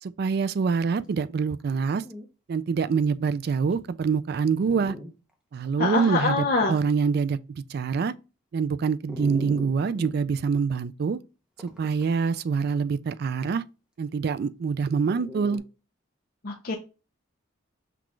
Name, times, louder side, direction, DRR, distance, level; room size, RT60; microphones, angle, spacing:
voice 1, 0.0-2.0 2.5-5.0 5.5-7.4 7.7-8.1 8.5-11.2 11.6-13.6 14.0-15.6, right 5 dB, 50° right, 0.3 m, -25 dB
Dog, 1.6-1.7 2.0-2.3 2.9-3.0 3.7-3.8 4.6-5.1 5.6-5.7 9.1-10.1 11.6-12.1 15.0-15.6, left 1 dB, 5° right, 0.7 m, -39 dB
voice 2, 5.8-6.8 16.4-16.8, left 3 dB, 45° left, 0.6 m, -25 dB
5.9 x 2.4 x 3.1 m
head